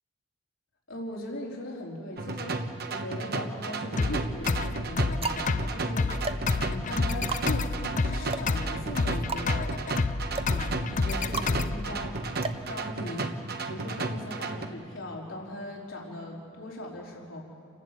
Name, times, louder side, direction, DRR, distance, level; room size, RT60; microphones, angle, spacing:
voice 1, 0.9-10.1 10.5-12.1 12.7-13.4 13.7-17.4, left 1 dB, 85° left, -3 dB, 4.1 m, -39 dB
sound 1, 2.2-14.7, right 3 dB, 55° right, 1.2 m, -34 dB
sound 2, 3.3-4.0 4.7-13.4, right 4 dB, 30° right, 0.7 m, -38 dB
sound 3, 4.0-12.0, left 3 dB, 40° left, 0.5 m, -29 dB
29.5 x 11.5 x 8.3 m, 2.5 s
head